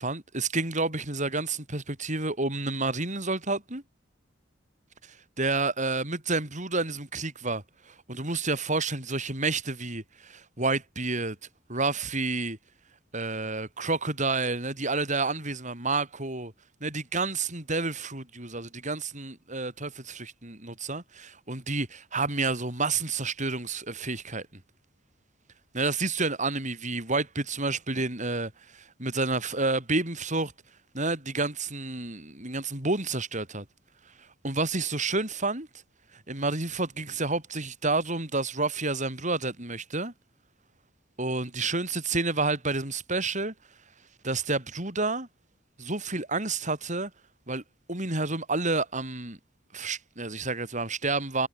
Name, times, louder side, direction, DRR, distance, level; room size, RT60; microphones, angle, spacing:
voice 1, 0.0-3.8 5.4-11.4 11.7-12.6 13.1-16.5 16.8-24.5 25.7-30.5 30.9-33.6 34.4-35.7 36.3-40.1 41.2-43.5 44.2-45.3 45.8-47.1 47.5-47.6 47.9-49.4 49.7-51.5, right 3 dB, 40° right, 7.3 m, -29 dB
head